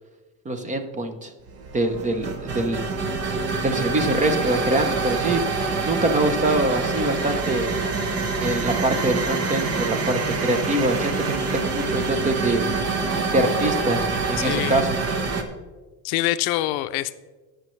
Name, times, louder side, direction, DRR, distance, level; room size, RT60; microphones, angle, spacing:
voice 1, 0.4-1.3 1.7-2.9 3.6-5.4 5.8-7.7 8.4-12.6 13.3-14.0 14.3-14.9, right 1 dB, 20° right, 7 dB, 0.8 m, -24 dB
sound 1, 1.5-15.4, right 4 dB, 40° right, 1.1 m, -26 dB
voice 2, 14.4-14.9 16.0-17.1, left 16 dB, 75° left, 13 dB, 0.6 m, -25 dB
18.0 x 6.5 x 3.2 m, 1.3 s
cardioid pair, 145°, 38 cm